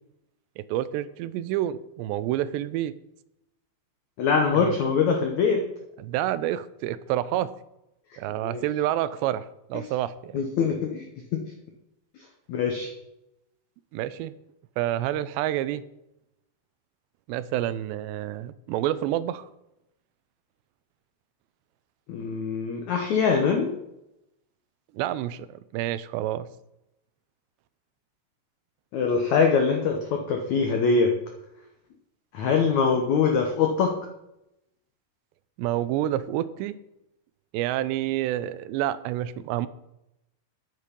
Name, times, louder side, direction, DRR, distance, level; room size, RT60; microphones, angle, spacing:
voice 1, 0.6-2.9 4.5-4.8 6.0-7.5 8.2-10.4 13.9-14.3 14.8-15.8 17.3-19.5 24.9-26.5 35.6-36.8 37.5-39.7, right 13 dB, 85° right, 15 dB, 2.8 m, -28 dB
voice 2, 4.2-5.6 8.4-8.6 10.3-11.0 12.5-12.9 22.1-23.7 28.9-30.0 30.3-31.1 32.3-33.9, left 5 dB, 80° left, 3 dB, 1.6 m, -23 dB
10.0 x 9.6 x 5.2 m, 0.87 s
omnidirectional pair, 4.9 m